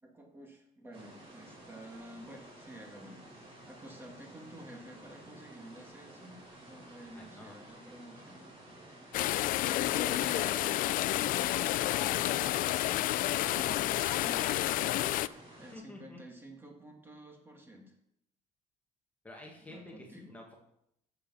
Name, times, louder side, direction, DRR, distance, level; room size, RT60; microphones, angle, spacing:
voice 1, 0.0-8.5 11.2-11.4 13.5-15.1 15.6-17.9 19.7-20.3, right 1 dB, 15° right, 1 dB, 2.0 m, -51 dB
sound 1, 0.9-15.7, right 1 dB, 35° right, 4.2 m, -53 dB
voice 2, 7.1-7.6 9.7-10.8 15.7-16.2 19.2-20.6, left 1 dB, 10° left, -1 dB, 1.7 m, -48 dB
sound 2, 9.1-15.3, left 15 dB, 70° left, 0.4 m, -30 dB
11.5 x 7.1 x 5.4 m, 0.77 s
cardioid pair, 140°, 15 cm